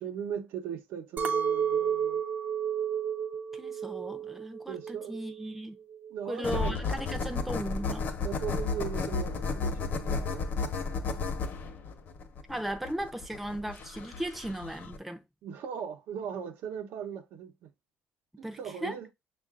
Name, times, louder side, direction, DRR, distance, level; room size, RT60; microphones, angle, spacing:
voice 1, 0.0-2.2 4.7-5.2 6.1-6.8 8.2-10.5 15.4-17.7 18.4-19.1, right 8 dB, 75° right, 0.8 m, -38 dB
Chink clink, 1.2-5.6 5.9-6.5, right 8 dB, 45° right, 0.6 m, -32 dB
voice 2, 3.5-5.8 6.2-8.1 12.5-15.2 18.4-19.0, right 1 dB, 5° right, 0.5 m, -37 dB
sound 1, 6.4-15.0, left 4 dB, 50° left, 0.9 m, -33 dB
6.5 x 2.5 x 2.4 m
cardioid pair, 125°, 4 cm